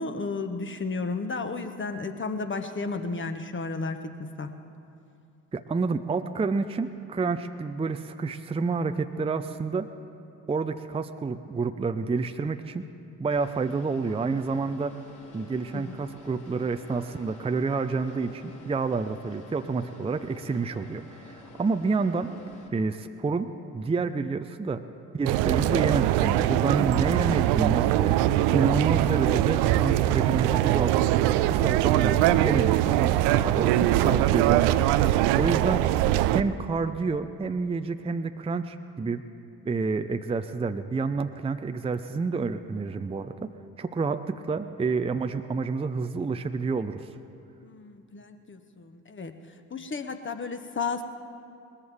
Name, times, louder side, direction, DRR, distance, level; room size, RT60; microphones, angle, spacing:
voice 1, 0.0-4.5 15.7-15.9 47.6-49.3 49.7-51.0, left 4 dB, 25° left, 7 dB, 1.2 m, -33 dB
voice 2, 5.5-9.9 10.5-12.8 13.2-15.0 15.3-22.3 22.7-23.5 23.7-24.8 25.1-31.1 31.5-35.8 36.3-39.2 39.6-43.5 43.8-47.1, right 4 dB, 15° right, 9 dB, 0.6 m, -29 dB
sound 1, 13.3-22.7, left 3 dB, 45° left, 3.1 m, -48 dB
sound 2, 25.2-36.4, right 14 dB, 65° right, 0.6 m, -22 dB
20.5 x 13.5 x 3.6 m, 2.6 s
figure-of-eight pair, 45°, 43 cm